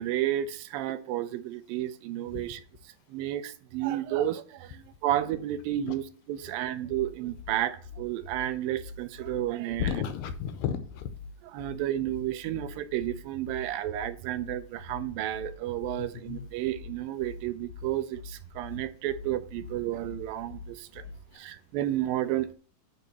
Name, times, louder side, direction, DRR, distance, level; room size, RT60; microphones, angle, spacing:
voice 1, 0.0-2.6 3.1-9.9 11.5-21.0 21.3-22.5, right 13 dB, 80° right, 2.3 m, -32 dB
sound 1, 6.9-21.3, left 5 dB, 35° left, 0.9 m, -45 dB
voice 2, 9.8-11.1 16.0-16.4 21.3-21.4, left 9 dB, 80° left, 2.3 m, -33 dB
8.3 x 3.9 x 6.8 m
omnidirectional pair, 4.2 m